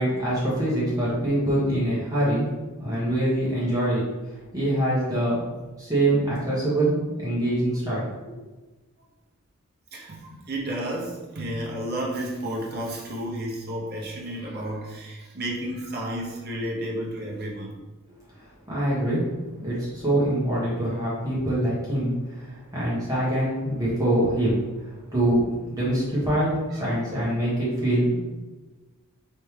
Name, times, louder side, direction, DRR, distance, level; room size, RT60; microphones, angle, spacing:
voice 1, 0.0-2.5 2.8-4.0 4.5-5.4 5.8-8.1 18.4-19.2 19.6-24.6 25.1-28.2, right 1 dB, 15° right, -8 dB, 1.5 m, -24 dB
voice 2, 9.9-17.7 26.7-26.8, right 1 dB, 45° right, -3 dB, 0.9 m, -32 dB
4.4 x 3.3 x 3.3 m, 1.2 s
head